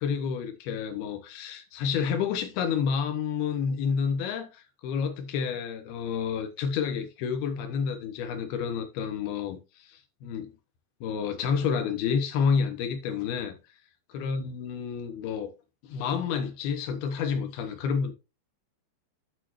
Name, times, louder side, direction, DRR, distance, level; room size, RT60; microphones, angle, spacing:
voice 1, 0.0-10.5 11.0-13.5 14.1-15.5 15.8-18.1, left 6 dB, 75° left, 2.4 m, -29 dB
13.0 x 4.4 x 3.0 m
omnidirectional pair, 5.7 m